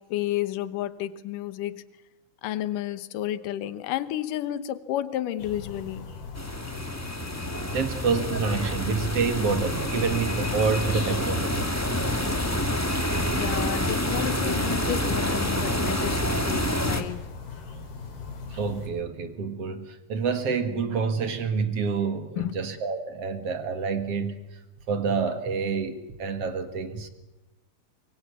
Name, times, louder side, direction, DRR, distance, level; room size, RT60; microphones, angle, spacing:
voice 1, 0.0-1.8 2.4-6.1 13.3-17.2 22.4-22.6, left 13 dB, 70° left, 14 dB, 2.5 m, -31 dB
sound 1, 5.4-18.9, left 4 dB, 90° left, 5.5 m, -40 dB
sound 2, 6.4-17.0, left 1 dB, 10° left, 0.8 m, -27 dB
voice 2, 7.7-11.7 18.5-24.4 24.9-27.1, right 5 dB, 50° right, 9 dB, 2.2 m, -28 dB
25.0 x 23.5 x 8.4 m, 1.0 s
omnidirectional pair, 4.3 m